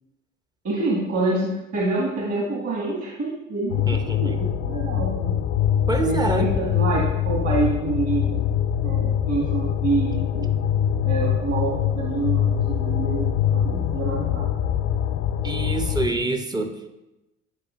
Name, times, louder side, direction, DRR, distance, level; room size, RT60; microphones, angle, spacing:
voice 1, 0.6-3.7 4.2-5.3 6.0-8.3 8.8-10.1 10.3-10.5 11.0-13.3 13.5-14.5, right 3 dB, 40° right, -5 dB, 1.6 m, -26 dB
sound 1, 3.7-16.1, left 9 dB, 60° left, 0.5 m, -23 dB
voice 2, 3.9-4.4 5.9-6.5 15.4-16.9, right 2 dB, 10° right, 5 dB, 0.6 m, -26 dB
8.5 x 4.7 x 2.5 m, 0.98 s
hypercardioid pair, 65°, 38 cm